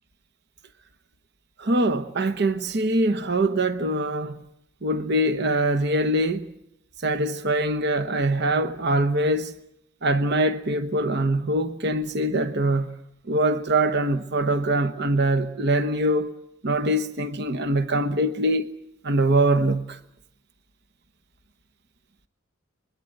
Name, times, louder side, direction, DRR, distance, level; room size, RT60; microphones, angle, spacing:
voice 1, 1.6-4.4 4.8-6.5 7.0-9.6 10.0-12.9 13.3-16.3 16.6-18.7 19.0-20.0, right 1 dB, 55° right, 1.1 m, -23 dB
25.0 x 21.5 x 7.9 m
head